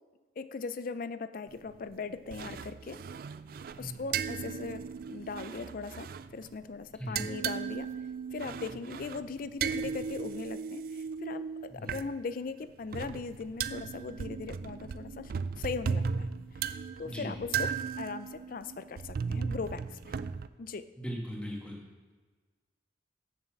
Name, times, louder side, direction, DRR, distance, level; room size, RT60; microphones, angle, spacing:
voice 1, 0.4-3.0 3.8-4.8 5.1-7.9 8.3-15.3 15.6-16.3 16.5-16.6 17.0-17.7 18.0-20.1 20.6-20.9, left 4 dB, 50° left, 13 dB, 0.4 m, -39 dB
sound 1, 1.5-1.9 2.3-6.6 7.0-12.1 12.7-20.5, right 6 dB, 50° right, 0.3 m, -36 dB
voice 2, 21.0-21.8, equal, 5° left, -2 dB, 1.5 m, -38 dB
7.0 x 6.5 x 7.1 m, 1.4 s
head